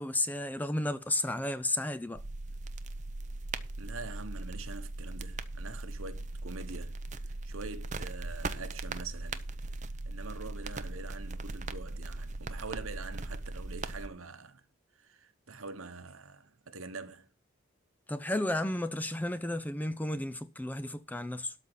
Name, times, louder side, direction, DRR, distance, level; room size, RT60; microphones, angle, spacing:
voice 1, 0.0-2.2 18.1-21.5, left 1 dB, 10° left, 0.4 m, -33 dB
sound 1, 2.1-14.1, right 2 dB, 35° right, 0.7 m, -39 dB
voice 2, 3.8-7.0 7.2-9.5 10.0-14.6 14.9-17.3, right 4 dB, 70° right, 1.2 m, -44 dB
12.5 x 4.2 x 8.1 m
head